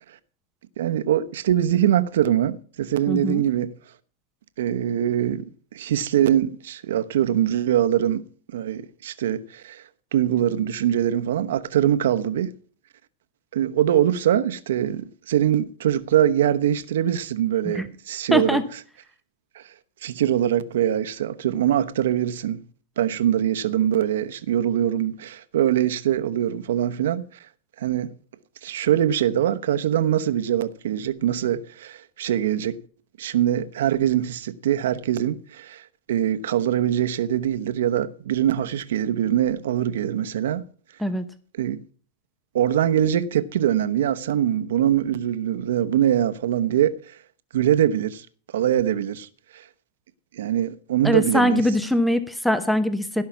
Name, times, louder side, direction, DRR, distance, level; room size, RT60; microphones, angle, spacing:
voice 1, 0.8-3.7 4.6-5.4 5.7-8.2 8.5-9.8 10.1-12.5 13.5-18.6 19.5-19.6 20.0-22.6 23.0-27.2 27.8-28.1 28.6-32.8 33.2-40.6 41.6-41.8 42.5-46.9 47.5-48.3 48.5-49.3 49.5-49.6 50.3-51.6, right 11 dB, 75° right, 1.0 m, -23 dB
voice 2, 3.1-3.4 17.6-17.9 18.3-18.6 41.0-41.2 51.0-53.2, equal, ahead, 0.8 m, -22 dB
16.5 x 5.7 x 5.9 m
supercardioid pair, 145°, 0 cm